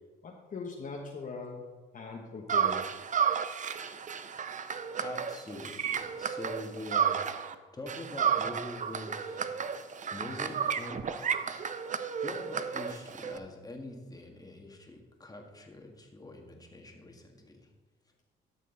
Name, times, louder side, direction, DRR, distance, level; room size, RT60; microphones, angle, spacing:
voice 1, 0.2-1.6 1.9-2.8, left 4 dB, 45° left, 0 dB, 1.2 m, -40 dB
sound 1, 2.5-7.6 7.9-13.4, right 7 dB, 40° right, 0.6 m, -32 dB
voice 2, 5.0-9.4 10.1-11.9 12.2-17.7, left 1 dB, 20° left, 2 dB, 1.7 m, -44 dB
12.5 x 6.4 x 3.9 m, 1.4 s
cardioid pair, 90°, 20 cm